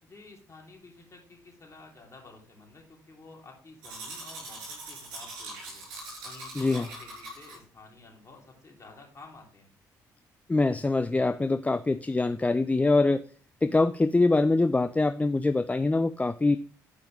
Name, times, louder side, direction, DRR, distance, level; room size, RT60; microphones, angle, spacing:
voice 1, 0.0-5.8 6.2-9.7, left 3 dB, 35° left, 0 dB, 3.1 m, -51 dB
Domestic sounds home sounds, 3.8-7.6, right 2 dB, 80° right, 3.5 m, -42 dB
voice 2, 6.5-6.9 10.5-13.2 13.6-16.6, left 3 dB, 15° left, 10 dB, 0.4 m, -24 dB
11.0 x 5.0 x 3.2 m, 0.41 s
hypercardioid pair, 50°, 8 cm